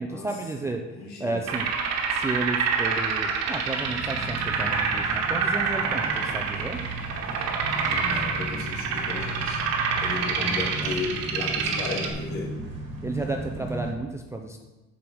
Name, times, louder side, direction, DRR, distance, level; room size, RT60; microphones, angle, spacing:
voice 1, 0.0-0.8 1.2-1.7 2.1-6.8 10.4-11.0 13.0-14.6, right 2 dB, 10° right, 2 dB, 0.3 m, -32 dB
voice 2, 0.9-1.4 7.9-9.6 10.0-12.5, left 4 dB, 60° left, -2 dB, 2.3 m, -35 dB
sound 1, 1.5-12.1, right 5 dB, 55° right, 1.2 m, -27 dB
sound 2, 3.8-13.9, right 1 dB, 40° right, 1.7 m, -36 dB
7.0 x 5.0 x 6.1 m, 1.1 s
cardioid pair, 160°, 31 cm